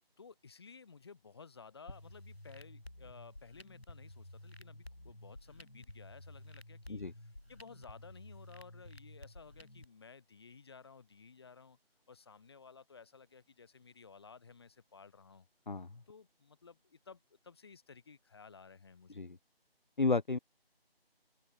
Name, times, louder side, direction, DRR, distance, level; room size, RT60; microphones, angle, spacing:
voice 1, 0.2-11.8 12.1-15.5 16.1-19.2, left 5 dB, 25° left, 4.2 m, -56 dB
sound 1, 1.9-9.9, left 1 dB, 85° left, 5.7 m, -52 dB
voice 2, 20.0-20.4, left 3 dB, 50° left, 1.0 m, -32 dB
open air
figure-of-eight pair, 165°, 30 cm